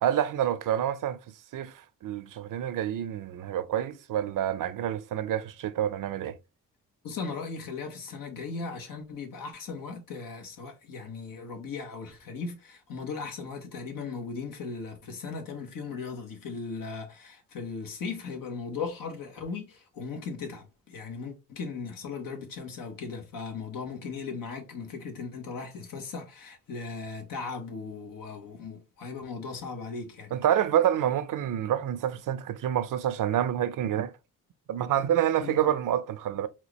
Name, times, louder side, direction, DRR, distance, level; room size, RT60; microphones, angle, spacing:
voice 1, 0.0-1.2 1.5-6.4 30.3-34.1 34.7-36.5, right 10 dB, 70° right, 0.6 m, -28 dB
voice 2, 7.0-30.4 35.4-35.7, left 4 dB, 85° left, 1.2 m, -38 dB
4.5 x 2.4 x 3.0 m
cardioid pair, 80°, 33 cm